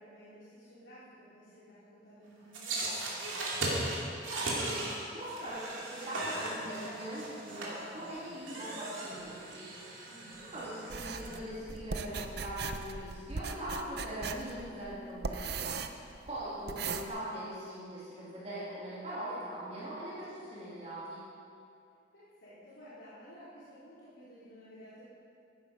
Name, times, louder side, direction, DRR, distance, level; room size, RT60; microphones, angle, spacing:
voice 1, 0.0-3.2 10.1-10.3 15.9-16.3 22.1-25.0, equal, 75° left, -11 dB, 3.4 m, -53 dB
sound 1, 2.5-11.4, right 2 dB, 80° right, 3.0 m, -38 dB
voice 2, 4.2-4.8 5.1-9.9 10.3-16.0 16.3-21.2, right 1 dB, 35° right, -9 dB, 3.0 m, -41 dB
sound 2, 10.9-17.1, right 4 dB, 55° right, 0.7 m, -39 dB
14.0 x 11.0 x 5.4 m, 2.5 s
head